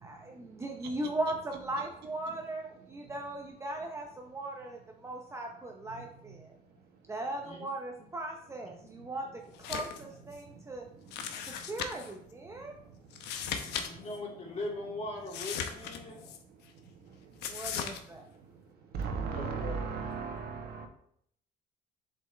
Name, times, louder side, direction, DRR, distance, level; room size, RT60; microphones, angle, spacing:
voice 1, 0.0-6.5 7.1-9.4 9.7-10.9 11.7-12.8 17.5-18.2, right 2 dB, 15° right, 1 dB, 0.7 m, -38 dB
voice 2, 7.2-7.7 8.6-8.7 10.1-10.2 11.5-12.3 13.1-16.4 19.3-19.8, left 2 dB, 40° left, -2 dB, 2.5 m, -42 dB
sound 1, 9.5-10.0 10.3-10.4 11.1-12.1 13.1-13.9 14.1-14.2 15.3-16.4 17.4-18.0, left 7 dB, 85° left, 0.8 m, -37 dB
voice 3, 18.9-20.9, right 5 dB, 70° right, 4 dB, 1.3 m, -35 dB
7.5 x 5.2 x 3.3 m, 0.69 s
cardioid pair, 110°, 17 cm